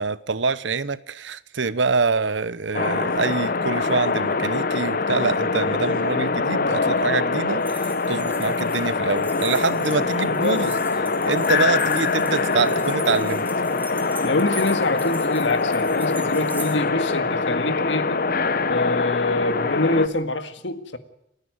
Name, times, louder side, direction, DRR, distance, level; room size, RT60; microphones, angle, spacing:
voice 1, 0.0-10.7 11.2-13.5, right 4 dB, 75° right, 0.9 m, -25 dB
sound 1, 2.7-20.1, left 4 dB, 50° left, 1.1 m, -23 dB
sound 2, 7.6-16.8, right 3 dB, 10° right, 3.2 m, -41 dB
voice 2, 10.1-10.8 14.2-18.2 18.7-21.0, left 2 dB, 75° left, 1.9 m, -25 dB
29.5 x 10.5 x 9.5 m
head